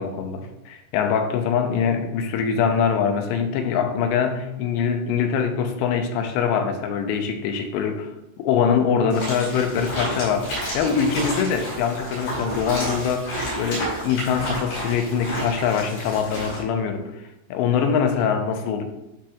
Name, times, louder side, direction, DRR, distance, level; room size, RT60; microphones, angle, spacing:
voice 1, 0.0-13.3 13.6-17.1 17.5-18.8, left 6 dB, 85° left, 6 dB, 2.9 m, -23 dB
sound 1, 9.1-16.6, equal, 55° left, 4.2 m, -30 dB
11.5 x 4.5 x 2.4 m, 0.93 s
omnidirectional pair, 5.0 m